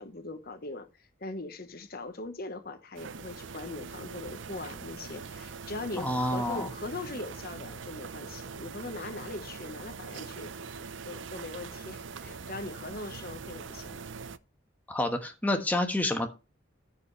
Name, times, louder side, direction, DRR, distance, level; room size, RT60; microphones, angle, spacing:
voice 1, 0.0-14.0, left 2 dB, 50° left, 1.2 m, -41 dB
sound 1, 2.9-14.4, right 5 dB, 75° right, 0.6 m, -42 dB
voice 2, 6.0-6.7 14.9-16.3, left 1 dB, 10° left, 1.3 m, -28 dB
14.5 x 5.5 x 3.2 m
head